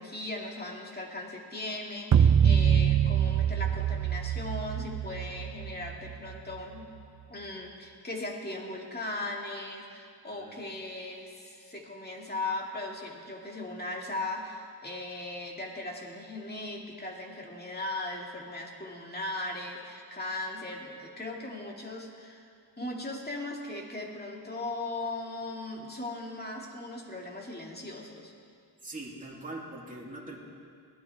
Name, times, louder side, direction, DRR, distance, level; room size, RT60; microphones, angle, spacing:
voice 1, 0.0-6.9 7.3-28.3, left 2 dB, 25° left, -1 dB, 2.3 m, -38 dB
sound 1, 2.1-6.6, right 8 dB, 45° right, 0.6 m, -25 dB
voice 2, 10.2-10.6 28.8-30.4, right 2 dB, 20° right, -4 dB, 2.9 m, -42 dB
22.0 x 16.5 x 3.6 m, 2.3 s
wide cardioid pair, 90°, 41 cm